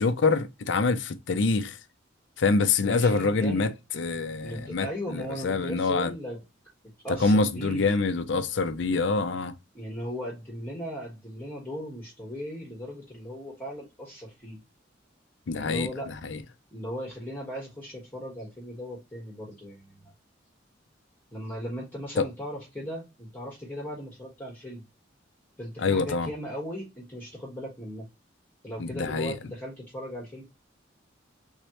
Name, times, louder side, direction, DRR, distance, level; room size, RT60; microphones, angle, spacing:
voice 1, 0.0-1.8 2.4-6.1 7.2-9.5 15.5-15.9 16.2-16.4 22.2-22.3 25.8-26.3 28.8-29.4, left 3 dB, 65° left, 0.5 m, -25 dB
voice 2, 2.8-3.7 4.4-6.4 7.0-8.1 9.7-14.6 15.5-16.1 16.7-20.1 21.3-24.8 25.6-28.1 28.6-30.4, equal, 10° left, 1.4 m, -37 dB
3.6 x 3.2 x 2.9 m
head